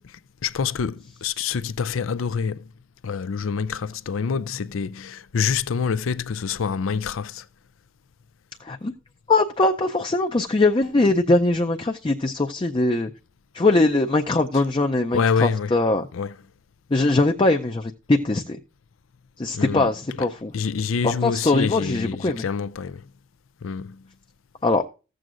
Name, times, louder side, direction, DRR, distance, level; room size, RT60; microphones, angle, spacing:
voice 1, 0.4-2.7 3.0-7.4 14.5-14.6 15.1-15.8 16.1-16.4 19.5-19.9 20.2-23.0 23.6-24.0, left 6 dB, 90° left, 0.5 m, -26 dB
voice 2, 8.6-8.9 9.3-13.1 13.5-16.1 16.9-18.6 19.4-20.5 21.0-22.4 24.6-24.8, left 2 dB, 25° left, 0.5 m, -21 dB
15.0 x 7.7 x 2.5 m
head